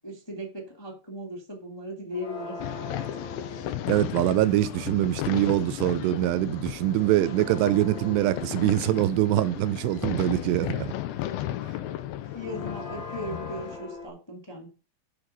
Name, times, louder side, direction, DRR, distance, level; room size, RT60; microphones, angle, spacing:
voice 1, 0.0-2.6 12.3-14.7, equal, 10° left, 1.2 m, -37 dB
sound 1, 2.1-4.5 6.4-9.6 10.2-14.1, left 3 dB, 30° left, 3.9 m, -42 dB
sound 2, 2.6-13.8, left 13 dB, 80° left, 2.4 m, -35 dB
voice 2, 3.9-10.9, right 14 dB, 90° right, 2.8 m, -24 dB
8.0 x 6.5 x 5.6 m
omnidirectional pair, 4.8 m